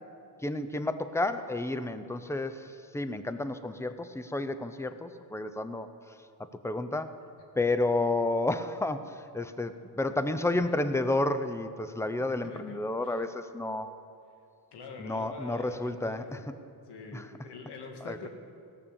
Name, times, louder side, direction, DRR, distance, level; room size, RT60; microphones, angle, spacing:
voice 1, 0.4-5.9 6.6-7.2 7.6-13.9 15.0-16.4 17.1-17.3 18.0-18.2, left 2 dB, 5° left, 11 dB, 0.6 m, -31 dB
voice 2, 12.2-13.2 14.7-16.5 16.9-18.3, left 4 dB, 85° left, 3 dB, 1.8 m, -44 dB
17.0 x 6.9 x 7.2 m, 2.4 s
cardioid pair, 105°, 40 cm